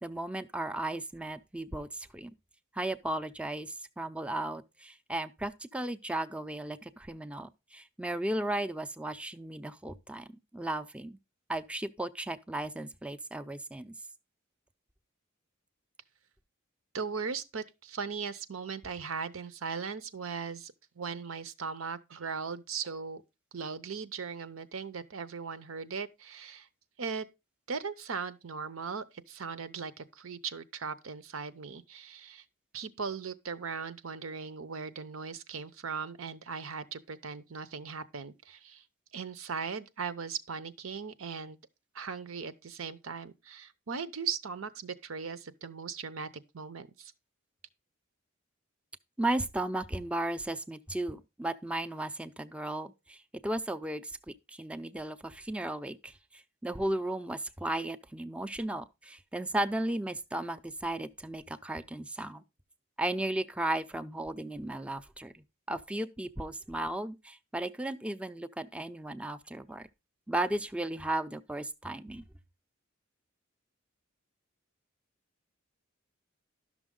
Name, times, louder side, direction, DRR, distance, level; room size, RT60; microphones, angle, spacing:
voice 1, 0.0-2.3 2.7-10.2 10.5-11.2 11.5-13.9 49.2-62.4 63.0-69.9 70.3-72.2, right 1 dB, 5° right, 0.5 m, -35 dB
voice 2, 16.9-23.2 23.5-26.7 27.0-27.3 27.7-32.4 32.7-38.8 39.1-41.6 41.9-46.3 46.5-47.1, right 5 dB, 75° right, 0.8 m, -38 dB
11.5 x 6.2 x 3.7 m
head